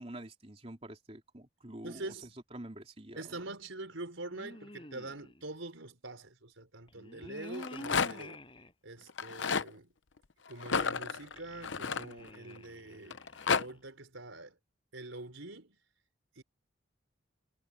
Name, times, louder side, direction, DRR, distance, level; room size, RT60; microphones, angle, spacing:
voice 1, 0.0-2.1 2.5-3.4, right 1 dB, 30° right, 3.1 m, -47 dB
voice 2, 1.8-2.3 3.2-8.4 8.8-9.9 10.5-13.2 13.5-14.6 14.9-15.8 16.4-16.5, right 2 dB, 90° right, 5.1 m, -45 dB
sound 1, 4.3-5.4 6.9-8.7 9.2-9.3 11.2-13.8, left 1 dB, 25° left, 8.0 m, -49 dB
Rattle, 7.4-8.4 9.1-9.7 10.6-12.6 13.1-13.6, left 5 dB, 75° left, 0.8 m, -32 dB
head